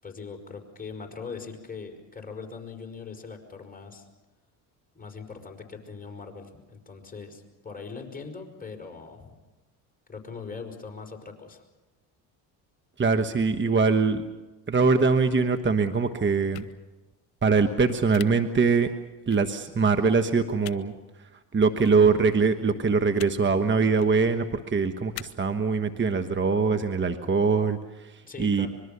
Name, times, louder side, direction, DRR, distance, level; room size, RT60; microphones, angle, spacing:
voice 1, 0.0-4.1 4.9-9.4 10.1-11.6 28.2-28.7, left 5 dB, 20° left, 3 dB, 5.3 m, -41 dB
voice 2, 13.0-14.2 14.7-16.6 17.4-18.9 19.3-20.9 21.5-28.7, right 4 dB, 25° right, 8 dB, 1.4 m, -23 dB
sound 1, 16.5-16.7 18.1-18.2 19.3-19.4 20.6-20.8 21.8-21.9 23.1-23.3 23.9-24.1 25.1-25.2, left 21 dB, 85° left, 0.9 m, -40 dB
25.0 x 22.0 x 6.9 m, 1.1 s
supercardioid pair, 75°, 43 cm